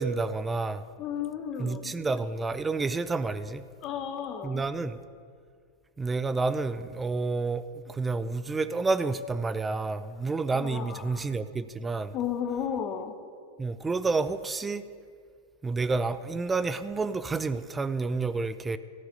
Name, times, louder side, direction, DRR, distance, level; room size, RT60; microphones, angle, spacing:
voice 1, 0.0-0.9 1.6-3.6 4.4-5.0 6.0-12.1 13.6-14.8 15.6-18.8, right 3 dB, 15° right, 0.4 m, -29 dB
voice 2, 1.0-1.9 3.8-4.6 10.5-11.3 12.1-13.1, left 8 dB, 40° left, 1.0 m, -33 dB
14.0 x 7.9 x 5.4 m
hypercardioid pair, 100°, 0 cm